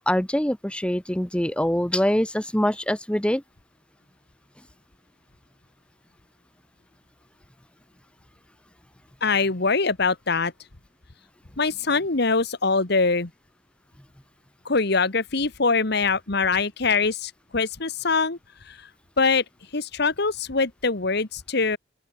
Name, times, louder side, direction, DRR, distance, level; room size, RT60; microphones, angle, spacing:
voice 1, 0.0-3.4, equal, 5° left, 1.3 m, -24 dB
voice 2, 9.2-10.5 11.6-13.3 14.7-18.4 18.7-18.8 19.2-19.4 19.7-21.8, left 4 dB, 60° left, 1.7 m, -23 dB
open air
head